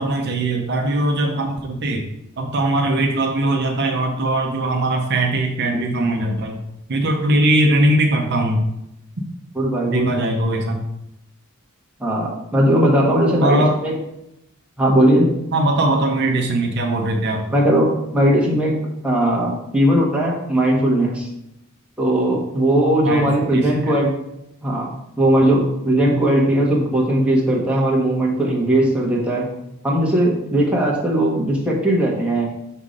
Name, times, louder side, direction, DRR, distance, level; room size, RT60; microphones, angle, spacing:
voice 1, 0.0-2.0 2.4-6.6 6.9-8.6 9.9-10.9 13.4-13.8 15.5-17.5 23.0-23.9, right 1 dB, 55° right, 2 dB, 0.7 m, -20 dB
voice 2, 9.5-10.1 12.0-13.9 14.8-15.4 17.5-18.7 19.0-21.3 22.0-24.1 24.6-24.9 25.2-29.5 29.8-32.5, right 1 dB, 5° right, -4 dB, 1.3 m, -18 dB
5.6 x 3.6 x 5.2 m, 0.85 s
head